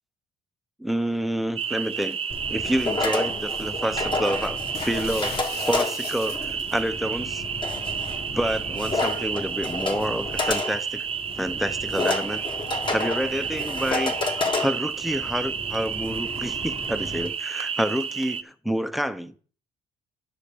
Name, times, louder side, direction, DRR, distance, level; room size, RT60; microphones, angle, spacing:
voice 1, 0.8-2.2 2.5-7.4 8.3-11.1 11.4-12.4 12.9-14.2 14.6-19.3, equal, ahead, 0.7 m, -28 dB
sound 1, 1.6-18.4, right 7 dB, 35° right, 0.7 m, -31 dB
sound 2, 2.3-17.3, left 3 dB, 30° left, 1.8 m, -31 dB
sound 3, 4.7-6.9, left 9 dB, 70° left, 1.1 m, -39 dB
9.2 x 7.0 x 5.0 m
cardioid pair, 110°, 17 cm